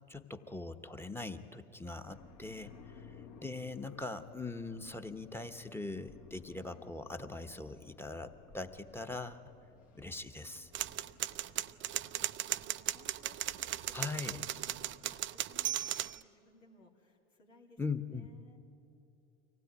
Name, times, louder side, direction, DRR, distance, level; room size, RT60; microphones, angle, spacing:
voice 1, 0.1-2.7 3.4-9.4 10.0-10.7 13.9-14.5 17.8-18.3, left 3 dB, 5° left, 8 dB, 1.1 m, -41 dB
sound 1, 2.0-15.3, left 6 dB, 50° left, 1.9 m, -58 dB
voice 2, 2.9-3.3 10.9-11.0 11.4-14.1 14.4-18.6, left 3 dB, 90° left, 1 dB, 2.8 m, -62 dB
sound 2, 10.7-16.2, right 13 dB, 35° right, 0.5 m, -37 dB
24.0 x 16.5 x 9.5 m, 2.9 s
hypercardioid pair, 85°, 37 cm